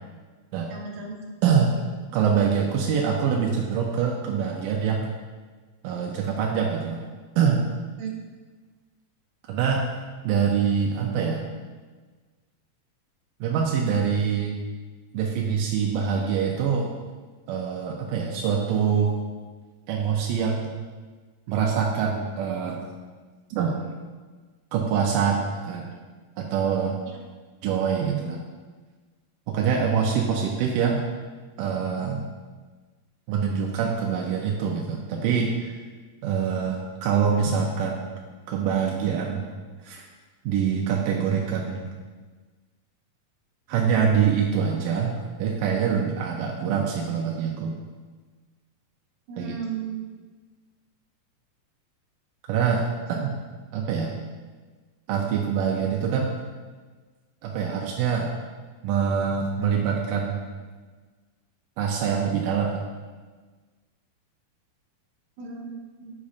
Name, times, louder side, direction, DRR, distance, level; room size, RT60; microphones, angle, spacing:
voice 1, 0.7-1.2 8.0-8.1 49.3-50.1 53.1-53.2 65.4-66.1, right 6 dB, 65° right, -2 dB, 2.1 m, -35 dB
voice 2, 1.4-1.9 2.1-5.1 5.8-7.0 7.4-7.6 9.5-9.8 10.2-11.5 13.4-14.6 15.1-16.9 17.5-19.1 19.9-20.7 21.5-22.9 23.5-23.9 24.7-25.9 26.4-27.0 27.6-28.4 29.5-31.1 31.6-32.3 33.3-35.7 36.2-38.2 38.5-39.5 39.8-40.0 40.5-41.9 43.7-47.8 49.4-49.6 52.5-53.3 53.7-54.2 55.1-56.4 57.4-58.3 58.8-60.4 61.8-62.7, right 7 dB, 85° right, -1 dB, 1.9 m, -25 dB
8.3 x 6.1 x 2.4 m, 1.4 s
omnidirectional pair, 4.4 m